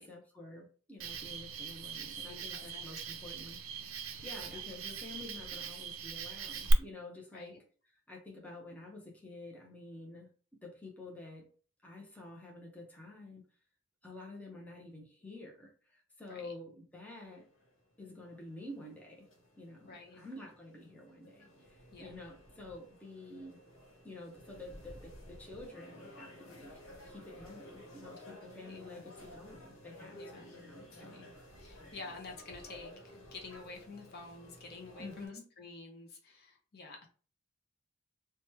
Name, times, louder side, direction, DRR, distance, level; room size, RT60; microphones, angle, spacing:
voice 1, 0.0-7.5 8.1-10.3 10.6-11.5 11.8-13.4 14.0-17.5 18.0-19.3 19.6-23.6 24.0-26.7 27.1-31.2 31.7-32.1 35.0-35.4, left 2 dB, 5° left, -2 dB, 0.6 m, -49 dB
Cricket, 1.0-6.7, right 5 dB, 75° right, 0.4 m, -41 dB
voice 2, 2.2-2.9 4.5-4.6 7.3-7.6 16.2-16.5 19.8-20.2 21.9-22.1 28.4-28.8 30.1-30.5 31.0-31.3 31.6-37.1, left 3 dB, 50° left, 2 dB, 0.6 m, -49 dB
sound 1, 17.3-35.3, left 1 dB, 75° left, 1.1 m, -54 dB
3.0 x 2.2 x 2.9 m, 0.40 s
head